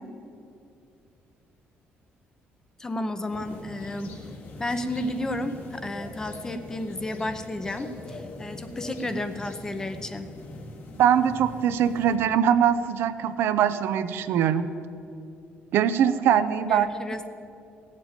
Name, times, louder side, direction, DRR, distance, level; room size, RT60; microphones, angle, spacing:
voice 1, 2.8-4.1 4.6-10.3 16.7-17.3, left 1 dB, 15° left, 9 dB, 0.7 m, -32 dB
sound 1, 3.3-12.2, left 2 dB, 70° left, 2.1 m, -42 dB
voice 2, 11.0-14.7 15.7-16.9, right 9 dB, 70° right, 11 dB, 0.7 m, -22 dB
17.0 x 7.5 x 9.0 m, 2.6 s
cardioid pair, 165°, 4 cm